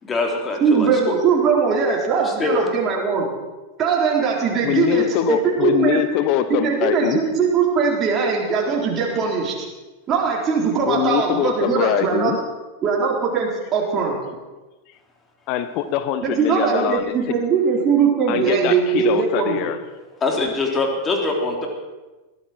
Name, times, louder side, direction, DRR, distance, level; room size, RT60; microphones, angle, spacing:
voice 1, 0.0-1.1 2.2-2.6 20.2-21.7, left 3 dB, 20° left, 2 dB, 3.3 m, -23 dB
voice 2, 0.6-3.3 3.8-6.0 6.6-9.5 10.1-12.3 12.8-14.1 16.2-19.6, right 6 dB, 30° right, -2 dB, 3.9 m, -20 dB
voice 3, 4.6-7.2 10.8-12.4 15.5-17.1 18.3-19.8, left 11 dB, 40° left, 11 dB, 1.1 m, -22 dB
21.5 x 15.0 x 4.5 m, 1.2 s
figure-of-eight pair, 90°, 0 cm